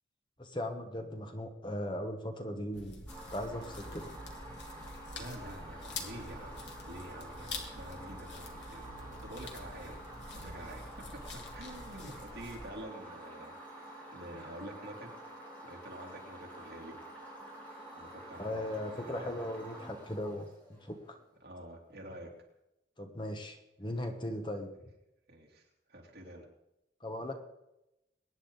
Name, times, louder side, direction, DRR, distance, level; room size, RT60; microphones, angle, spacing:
voice 1, 0.4-3.1 3.3-4.2 18.4-21.2 23.0-24.7 27.0-27.3, left 1 dB, 25° left, 5 dB, 1.2 m, -38 dB
sound 1, 2.7-12.7, left 2 dB, 75° left, 2.2 m, -46 dB
sound 2, 3.1-21.0, right 1 dB, 10° left, 4.8 m, -49 dB
voice 2, 5.1-6.6 6.9-10.0 10.3-11.0 11.5-15.1 15.7-17.0 17.9-19.5 21.4-22.3 25.3-26.5, right 1 dB, 60° right, -1 dB, 3.2 m, -48 dB
23.0 x 9.8 x 4.0 m, 0.90 s
head